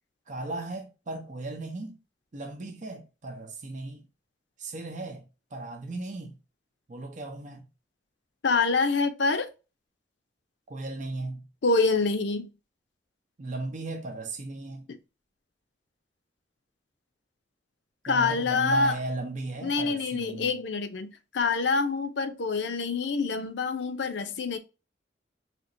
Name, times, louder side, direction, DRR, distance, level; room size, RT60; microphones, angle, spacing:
voice 1, 0.3-2.0 2.3-4.0 4.6-5.3 5.5-6.4 6.9-7.6 10.7-11.5 13.4-14.9 18.1-20.6, right 2 dB, 45° right, 0.7 m, -36 dB
voice 2, 8.4-9.5 11.6-12.5 14.9-15.0 18.0-19.0 19.6-24.6, left 4 dB, 70° left, 0.6 m, -26 dB
4.3 x 2.9 x 2.6 m
head